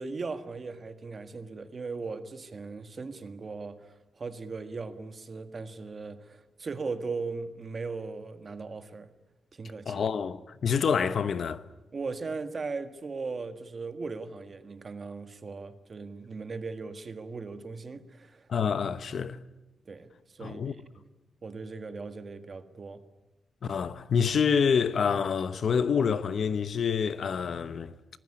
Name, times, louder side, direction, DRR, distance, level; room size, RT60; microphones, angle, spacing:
voice 1, 0.0-9.1 9.5-10.0 11.9-18.5 19.8-20.8 21.4-23.0, right 4 dB, 35° right, 1.7 m, -38 dB
voice 2, 9.9-11.6 18.5-19.5 20.4-20.7 23.6-28.0, left 6 dB, 60° left, 1.0 m, -27 dB
25.5 x 19.5 x 9.9 m
wide cardioid pair, 140°, 0 cm